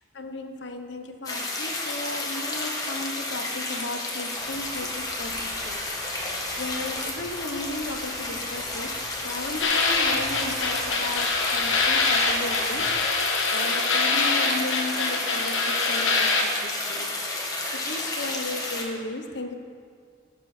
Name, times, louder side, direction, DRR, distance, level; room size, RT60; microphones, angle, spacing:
voice 1, 0.1-5.8 6.2-17.1 17.3-19.5, left 2 dB, 70° left, 6 dB, 0.9 m, -35 dB
sound 1, 1.2-18.8, left 2 dB, 20° left, 1.4 m, -31 dB
Bird, 4.3-13.1, equal, 5° left, 2.4 m, -44 dB
sound 2, 9.6-16.4, left 3 dB, 90° left, 1.4 m, -24 dB
18.0 x 6.7 x 4.3 m, 2.1 s
head